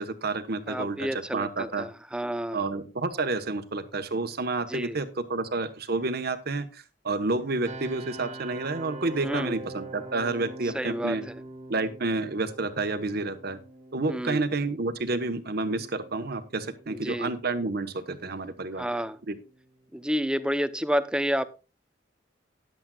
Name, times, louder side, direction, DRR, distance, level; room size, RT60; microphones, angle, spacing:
voice 1, 0.0-1.9 2.5-11.2 11.7-13.6 13.9-18.9 19.3-19.4, right 3 dB, 55° right, 9 dB, 1.2 m, -30 dB
voice 2, 0.7-2.7 4.7-5.0 9.2-9.5 10.7-11.2 14.1-14.5 16.9-17.3 18.8-19.2 19.9-21.5, equal, 5° right, 13 dB, 0.7 m, -29 dB
sound 1, 7.6-20.5, right 2 dB, 40° right, 1.5 m, -45 dB
13.5 x 10.5 x 2.4 m, 0.32 s
head